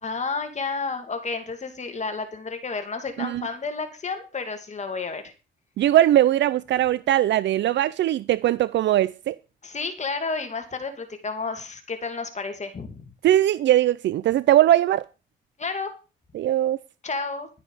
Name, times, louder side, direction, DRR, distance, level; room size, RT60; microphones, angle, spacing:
voice 1, 0.0-5.2 9.6-13.1 15.6-15.9 17.0-17.5, left 4 dB, 35° left, 2.7 m, -31 dB
voice 2, 5.8-9.4 13.2-15.0 16.3-16.8, right 13 dB, 65° right, 0.5 m, -20 dB
12.0 x 9.6 x 5.0 m
cardioid pair, 90°, 20 cm